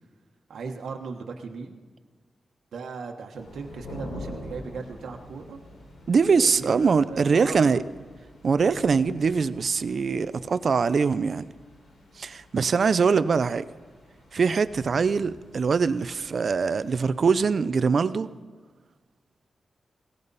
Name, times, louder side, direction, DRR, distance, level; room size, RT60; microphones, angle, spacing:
voice 1, 0.5-1.8 2.7-5.6 6.3-7.8, right 5 dB, 85° right, 1.2 m, -38 dB
sound 1, 3.3-17.3, left 1 dB, 90° left, 4.8 m, -46 dB
voice 2, 6.1-7.8 8.4-11.5 12.2-13.7 14.3-18.3, right 5 dB, 55° right, 0.5 m, -23 dB
19.0 x 17.5 x 4.1 m
wide cardioid pair, 105°, 0 cm